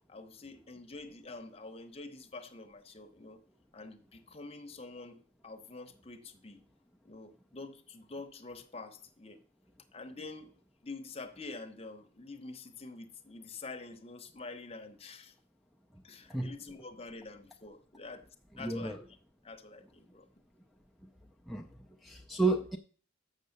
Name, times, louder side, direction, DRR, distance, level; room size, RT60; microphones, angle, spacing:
voice 1, 0.1-3.4 3.7-6.6 7.0-9.4 9.9-10.5 10.8-15.3 16.0-18.3 18.6-19.1 19.4-20.3, left 3 dB, 30° left, 0.9 m, -47 dB
voice 2, 18.6-19.0 21.5-21.7 22.0-22.8, right 3 dB, ahead, 0.4 m, -31 dB
6.8 x 6.5 x 6.6 m
head